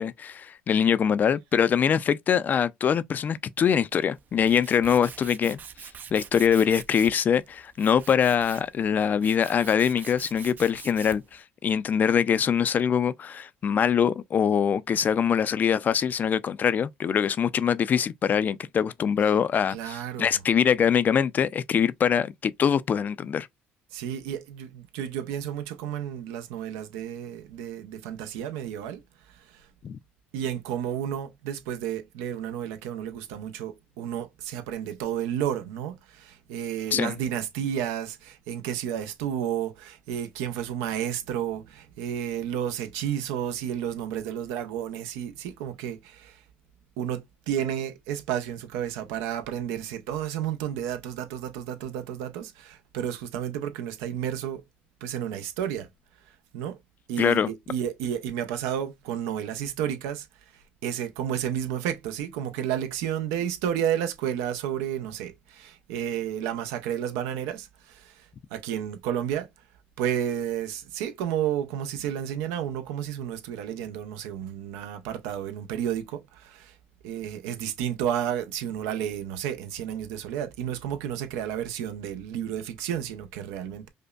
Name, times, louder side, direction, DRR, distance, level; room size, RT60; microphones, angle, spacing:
voice 1, 0.0-5.6 6.1-23.5 29.8-30.0 36.9-37.1 57.2-57.5, left 8 dB, 40° left, 0.3 m, -23 dB
Tools, 3.9-11.4, right 7 dB, 40° right, 0.4 m, -45 dB
voice 2, 19.7-20.4 23.9-29.7 30.3-46.4 47.0-54.6 55.0-55.9 56.2-56.8 57.1-69.5 70.0-76.8 77.0-83.9, right 10 dB, 90° right, 0.6 m, -31 dB
5.1 x 2.1 x 2.3 m
supercardioid pair, 95°, 5 cm